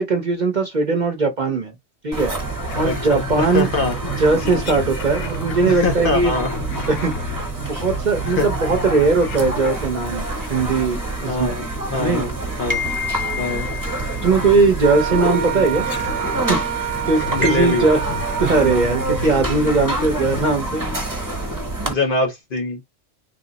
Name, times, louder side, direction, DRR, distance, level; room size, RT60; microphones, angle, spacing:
voice 1, 0.0-1.7 2.0-2.3 2.7-3.7 4.0-6.3 6.9-11.6 12.0-12.2 14.2-15.9 16.5-18.0 18.4-20.8, right 3 dB, 45° right, 0.8 m, -19 dB
sound 1, 2.1-21.9, right 2 dB, 15° right, 1.0 m, -27 dB
Alien Robot Cries, 2.6-10.1 10.5-11.2 12.9-13.4 14.4-14.5 15.7-16.5 16.9-21.3, left 5 dB, 80° left, 0.9 m, -34 dB
voice 2, 2.8-3.9 5.7-6.5 8.3-8.5 11.3-11.6 11.9-12.3 12.6-12.8 13.4-13.7 17.3-17.8 21.8-22.9, left 3 dB, 50° left, 0.8 m, -23 dB
Wind instrument woodwind instrument, 14.8-19.2, right 12 dB, 85° right, 0.9 m, -28 dB
3.4 x 2.0 x 3.8 m
omnidirectional pair, 1.3 m